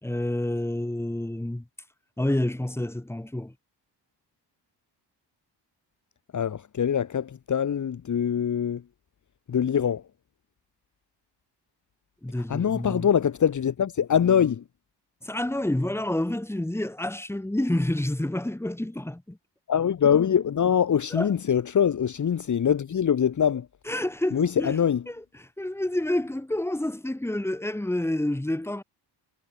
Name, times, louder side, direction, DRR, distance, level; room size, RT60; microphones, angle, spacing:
voice 1, 0.0-1.7 2.2-3.5 12.2-13.1 15.2-19.4 21.1-21.3 23.9-28.8, left 1 dB, 5° left, 5.1 m, -29 dB
voice 2, 6.3-8.8 9.5-10.0 12.5-14.6 19.7-23.7 24.3-25.0, left 8 dB, 45° left, 2.0 m, -23 dB
wide cardioid pair, 170°, 42 cm